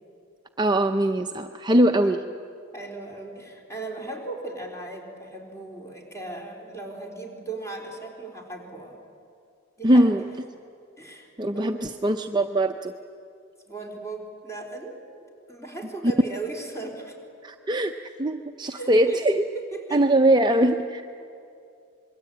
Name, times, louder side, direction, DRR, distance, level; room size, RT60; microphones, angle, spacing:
voice 1, 0.6-2.2 9.8-10.2 11.4-13.0 17.4-17.9 18.2-19.4 19.9-21.0, right 1 dB, 20° right, 5 dB, 0.6 m, -21 dB
voice 2, 2.7-9.0 9.8-10.3 11.0-11.8 13.7-15.0 15.5-17.2 18.6-20.0 21.2-21.4, right 3 dB, 15° left, 1 dB, 3.9 m, -37 dB
26.5 x 22.5 x 8.6 m, 2.5 s
head